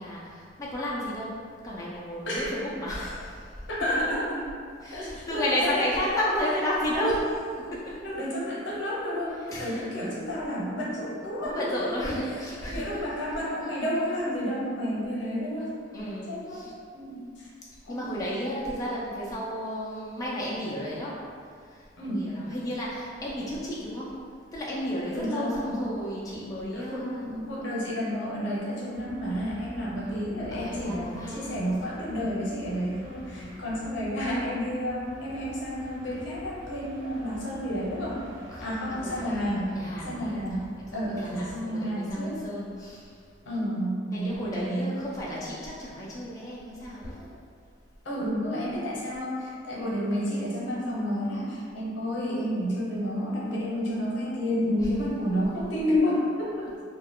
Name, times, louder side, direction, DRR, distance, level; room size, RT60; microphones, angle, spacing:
voice 1, 0.0-1.4 1.6-3.6 4.8-8.0 9.5-9.9 11.4-13.1 13.6-13.7 15.9-16.7 17.9-21.2 21.5-24.2 24.5-27.3 30.0-32.0 33.4-33.7 38.5-43.2 44.1-47.3 49.8-50.1 54.8-54.9, equal, 20° left, -7 dB, 0.4 m, -33 dB
voice 2, 2.3-2.6 3.7-4.4 4.9-6.2 8.0-16.7 16.9-17.5 17.8-18.5 22.0-22.3 25.1-25.8 26.7-38.2 38.6-39.7 40.0-42.4 43.5-45.0 48.0-56.7, equal, 75° left, -6 dB, 0.8 m, -30 dB
sound 1, 28.9-41.5, right 1 dB, 80° right, 0.4 m, -47 dB
2.3 x 2.1 x 3.5 m, 2.2 s
head